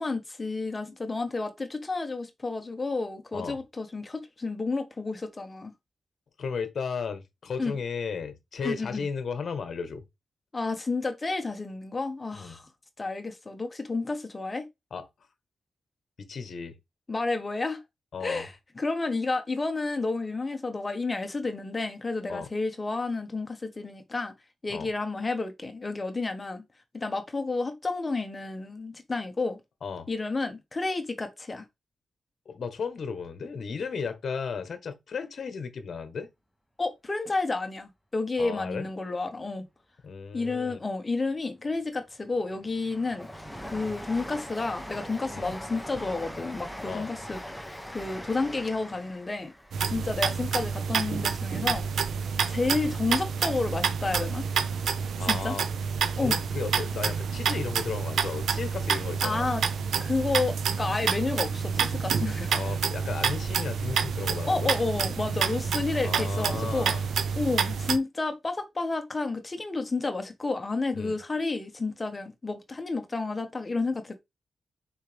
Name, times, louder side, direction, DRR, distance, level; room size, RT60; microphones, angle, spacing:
voice 1, 0.0-5.7 7.6-7.7 8.6-9.0 10.5-12.7 13.0-14.7 17.1-17.8 18.2-24.3 24.6-26.6 26.9-29.6 30.1-31.6 36.8-39.7 40.3-43.3 43.6-49.5 49.8-51.8 52.5-54.5 55.3-55.6 56.2-56.4 59.2-59.6 60.0-62.7 64.5-66.9 67.3-74.2, left 3 dB, 20° left, 1.2 m, -31 dB
voice 2, 6.4-10.0 12.4-12.6 14.9-15.0 16.2-16.7 18.1-18.5 22.3-22.5 24.7-24.9 29.8-30.1 32.5-36.3 38.4-38.9 40.0-40.8 45.3-45.5 46.8-47.1 55.2-55.7 56.1-59.5 62.5-64.7 66.0-67.0 70.9-71.2, left 5 dB, 55° left, 1.2 m, -35 dB
Train, 41.8-52.0 52.4-53.3 53.6-53.7, equal, ahead, 0.9 m, -42 dB
sound 1, 49.7-68.0, right 6 dB, 80° right, 0.8 m, -28 dB
6.4 x 4.9 x 3.5 m
wide cardioid pair, 135°, 0 cm